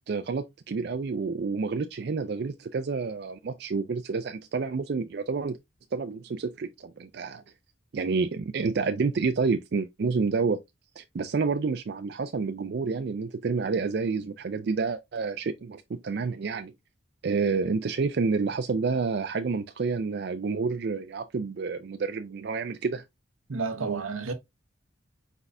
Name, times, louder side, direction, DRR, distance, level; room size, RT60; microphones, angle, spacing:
voice 1, 0.1-5.6 5.9-7.4 7.9-10.6 11.0-16.7 17.2-23.0, right 4 dB, 50° right, 0.4 m, -29 dB
voice 2, 23.5-24.3, right 4 dB, 85° right, 0.9 m, -30 dB
4.6 x 4.0 x 2.6 m
head